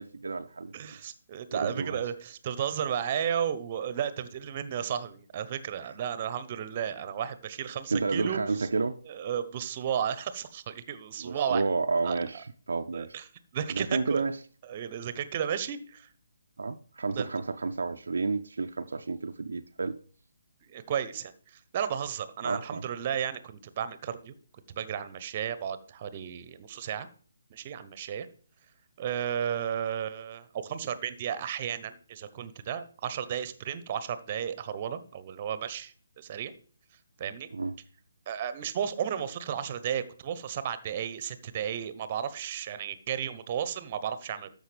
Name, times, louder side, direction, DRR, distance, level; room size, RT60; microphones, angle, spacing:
voice 1, 0.0-0.7 1.5-2.0 7.9-9.0 11.2-13.2 13.7-14.4 16.6-20.0 22.4-22.8 37.5-37.7, right 4 dB, 65° right, 0.5 m, -31 dB
voice 2, 0.7-8.7 9.1-11.6 12.0-12.2 12.9-13.3 13.5-14.2 14.6-16.1 17.2-17.3 20.7-24.3 24.7-27.1 27.5-28.3 29.0-36.5 37.2-37.5 38.3-44.5, right 8 dB, 35° right, 0.8 m, -33 dB
13.5 x 5.2 x 3.4 m
figure-of-eight pair, 140°, 0 cm